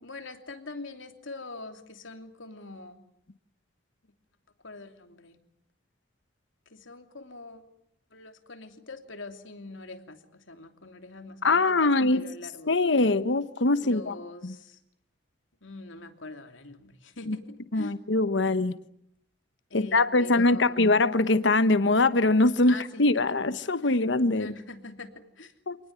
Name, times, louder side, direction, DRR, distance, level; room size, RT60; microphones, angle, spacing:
voice 1, 0.0-3.0 4.6-5.4 6.7-7.6 8.1-12.7 13.8-14.8 15.6-18.0 19.7-20.9 22.6-23.4 23.8-23.9 24.3-25.5, left 3 dB, 85° left, 6 dB, 3.0 m, -43 dB
voice 2, 11.4-12.2 12.7-14.1 14.4-14.5 17.3-17.4 17.7-18.8 19.7-24.5 25.7-25.8, left 2 dB, 65° left, 13 dB, 1.1 m, -23 dB
27.0 x 20.0 x 9.5 m, 0.74 s
head